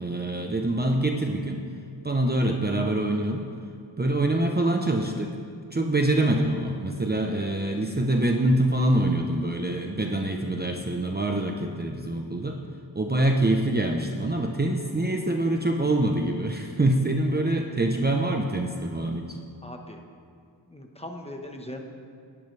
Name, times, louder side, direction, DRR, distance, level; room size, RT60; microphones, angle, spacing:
voice 1, 0.0-1.6 2.0-3.5 4.0-5.3 5.7-12.6 12.9-19.4, right 1 dB, 20° right, 2 dB, 0.9 m, -25 dB
voice 2, 19.6-20.0 20.7-21.8, left 1 dB, 15° left, 3 dB, 1.3 m, -39 dB
19.0 x 11.0 x 3.4 m, 2.2 s
wide cardioid pair, 85°, 46 cm